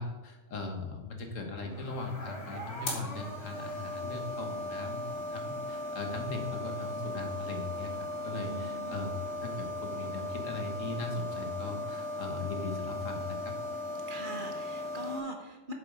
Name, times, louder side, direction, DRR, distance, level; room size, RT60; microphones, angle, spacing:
voice 1, 0.0-9.1 9.4-13.5, left 3 dB, 80° left, 3 dB, 1.8 m, -39 dB
sound 1, 1.6-15.2, left 1 dB, 65° left, 2.2 m, -38 dB
voice 2, 8.4-9.1 14.1-15.7, right 1 dB, 40° right, 3 dB, 1.3 m, -42 dB
7.5 x 7.3 x 4.8 m, 1.2 s
omnidirectional pair, 1.3 m